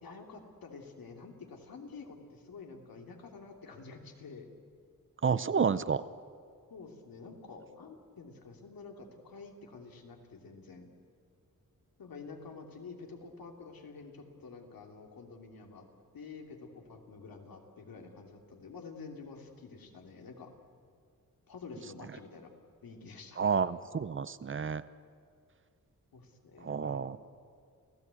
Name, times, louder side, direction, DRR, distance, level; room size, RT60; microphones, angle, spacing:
voice 1, 0.0-4.5 5.7-5.8 6.7-10.9 12.0-15.8 16.1-20.5 21.5-22.5 22.8-23.5 26.1-27.0, left 4 dB, 90° left, 2 dB, 2.8 m, -49 dB
voice 2, 5.2-6.0 23.4-24.8 26.6-27.2, right 6 dB, 35° right, 15 dB, 0.6 m, -30 dB
28.5 x 16.5 x 8.3 m, 2.2 s
wide cardioid pair, 155°, 34 cm